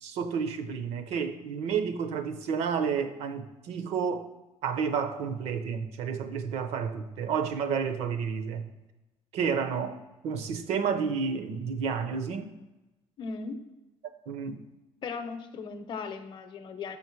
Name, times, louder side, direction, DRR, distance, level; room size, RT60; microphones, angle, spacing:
voice 1, 0.0-4.3 4.6-8.7 9.3-12.6 14.3-14.6, right 6 dB, 75° right, 9 dB, 0.7 m, -31 dB
voice 2, 13.2-13.6 15.0-17.0, left 4 dB, 45° left, 8 dB, 0.7 m, -37 dB
7.1 x 5.5 x 4.5 m, 1.0 s
cardioid pair, 155°, 11 cm